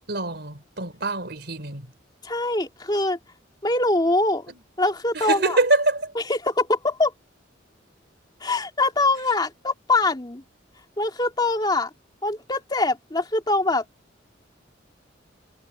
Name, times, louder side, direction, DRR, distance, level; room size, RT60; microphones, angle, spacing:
voice 1, 0.1-1.9 5.1-6.1, right 2 dB, 60° right, 4.3 m, -24 dB
voice 2, 2.2-3.2 3.6-4.5 4.8-5.6 6.1-7.1 8.4-10.4 11.0-11.9 12.2-13.8, left 2 dB, 20° left, 2.6 m, -23 dB
head